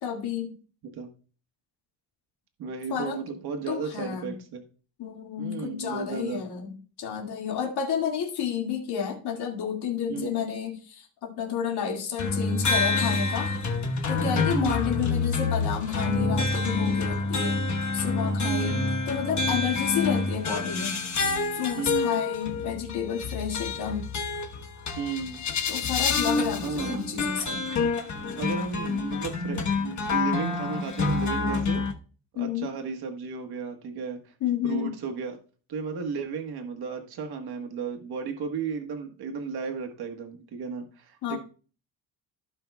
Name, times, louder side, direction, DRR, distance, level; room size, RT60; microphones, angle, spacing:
voice 1, 0.0-0.6 2.9-3.2 3.7-4.3 5.0-13.5 14.1-17.6 17.9-18.8 19.1-21.0 21.5-24.1 25.7-27.6 32.4-32.7 34.4-34.9 41.2-41.4, left 8 dB, 80° left, 0 dB, 2.2 m, -30 dB
voice 2, 2.6-4.6 5.4-6.4 10.1-10.4 14.5-14.9 18.4-18.9 19.9-20.3 21.8-22.2 25.0-25.4 26.6-27.0 28.3-31.9 32.3-34.3 34.6-35.4 35.7-41.4, right 6 dB, 75° right, 5 dB, 1.4 m, -34 dB
sound 1, 12.2-31.9, left 4 dB, 45° left, 1.2 m, -27 dB
16.0 x 5.5 x 2.3 m, 0.39 s
wide cardioid pair, 175°, 39 cm